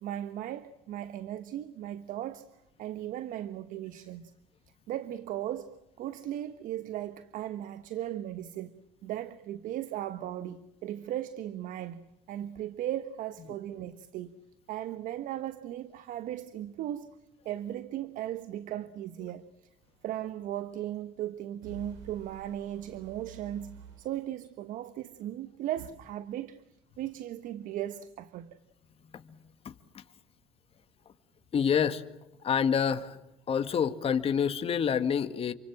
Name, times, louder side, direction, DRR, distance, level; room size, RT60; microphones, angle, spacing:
voice 1, 0.0-2.5 2.8-4.3 4.9-14.3 14.7-17.1 17.4-19.7 20.0-26.6 27.0-28.6, right 12 dB, 65° right, 1.3 m, -37 dB
sound 1, 19.8-19.9 21.6-24.1 25.8-25.9, right 6 dB, 90° right, 6.9 m, -49 dB
voice 2, 29.7-30.0 31.5-32.0 32.4-33.2 33.5-35.5, left 7 dB, 40° left, 1.9 m, -27 dB
29.0 x 25.0 x 7.5 m
supercardioid pair, 85°, 15 cm